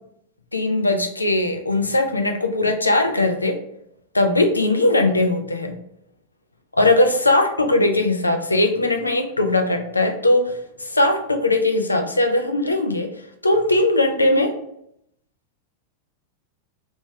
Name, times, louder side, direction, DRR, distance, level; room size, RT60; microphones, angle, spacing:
voice 1, 0.5-3.6 4.1-5.8 6.8-13.1 13.4-14.5, left 2 dB, 80° left, 5 dB, 0.5 m, -19 dB
3.3 x 3.1 x 3.3 m, 0.74 s
figure-of-eight pair, 90°, 0 cm